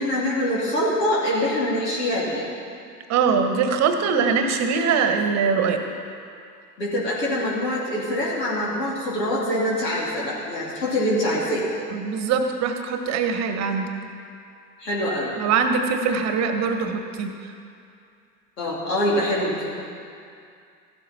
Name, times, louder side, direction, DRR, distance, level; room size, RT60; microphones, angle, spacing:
voice 1, 0.0-2.4 6.8-11.7 14.8-15.3 18.6-19.7, left 1 dB, 75° left, -6 dB, 3.2 m, -24 dB
voice 2, 3.1-5.8 11.9-13.9 15.4-17.5, right 5 dB, 30° right, 6 dB, 1.3 m, -22 dB
15.0 x 12.0 x 4.3 m, 2.4 s
figure-of-eight pair, 90°, 49 cm